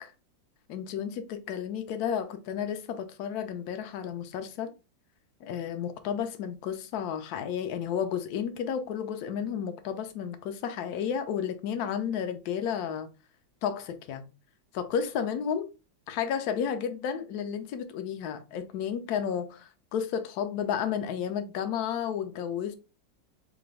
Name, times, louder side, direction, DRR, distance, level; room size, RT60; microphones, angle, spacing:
voice 1, 0.7-4.7 5.4-13.1 13.6-14.2 14.7-15.7 16.1-22.7, left 8 dB, 75° left, 0.9 m, -32 dB
3.8 x 2.5 x 3.1 m
omnidirectional pair, 2.1 m